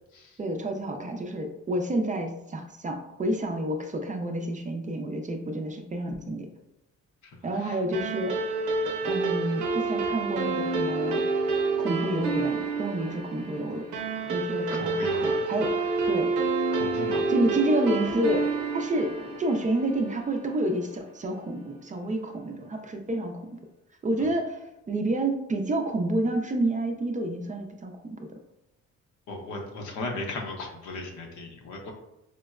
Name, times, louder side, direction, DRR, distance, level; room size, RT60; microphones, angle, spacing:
voice 1, 0.4-6.5 7.4-8.3 9.0-11.2 11.8-13.8 14.3-15.7 16.0-16.3 17.3-23.4 24.0-28.4, right 1 dB, 25° right, 4 dB, 0.4 m, -29 dB
voice 2, 7.2-7.8 14.7-15.4 15.8-15.9 16.7-17.3 24.2-24.3 29.3-31.9, left 2 dB, 75° left, 1 dB, 0.8 m, -37 dB
sound 1, 7.9-20.7, right 3 dB, 90° right, 0.7 m, -28 dB
4.3 x 2.0 x 2.3 m, 0.89 s
cardioid pair, 90°, 30 cm